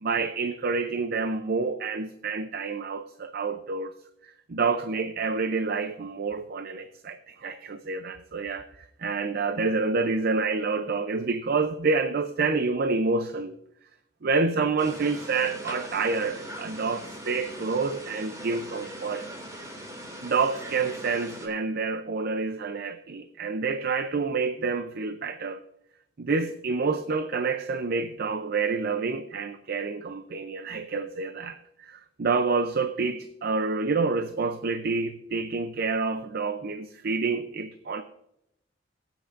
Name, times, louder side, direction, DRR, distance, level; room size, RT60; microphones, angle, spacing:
voice 1, 0.0-3.9 4.2-13.6 14.2-19.2 20.2-25.6 26.2-38.0, right 4 dB, 55° right, 10 dB, 0.5 m, -28 dB
sound 1, 14.8-21.5, equal, 20° right, 2.3 m, -41 dB
19.0 x 9.0 x 2.5 m, 0.81 s
head